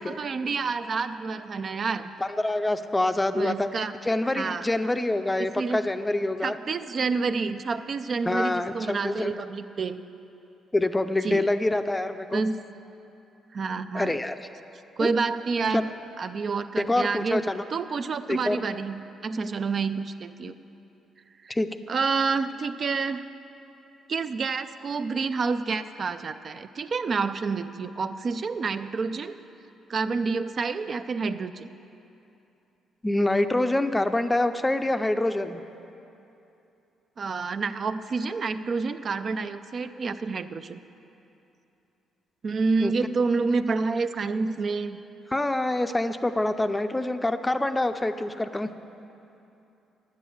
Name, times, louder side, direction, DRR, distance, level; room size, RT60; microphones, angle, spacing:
voice 1, 0.0-2.1 3.4-3.9 4.3-4.7 5.4-5.8 6.4-10.0 11.2-11.5 12.3-12.6 13.5-14.2 15.0-15.9 16.2-20.6 21.4-21.5 21.9-23.3 24.1-29.4 29.9-31.7 37.2-40.8 42.4-45.0, right 4 dB, 45° right, 10 dB, 0.4 m, -28 dB
voice 2, 2.2-6.6 8.3-9.3 10.7-12.4 13.9-14.4 15.0-15.1 15.7-15.8 16.8-17.6 18.3-18.6 21.5-21.7 33.0-35.6 42.8-42.9 45.3-48.7, left 2 dB, 15° left, 9 dB, 0.5 m, -26 dB
9.9 x 8.2 x 7.8 m, 2.8 s
cardioid pair, 90°, 0 cm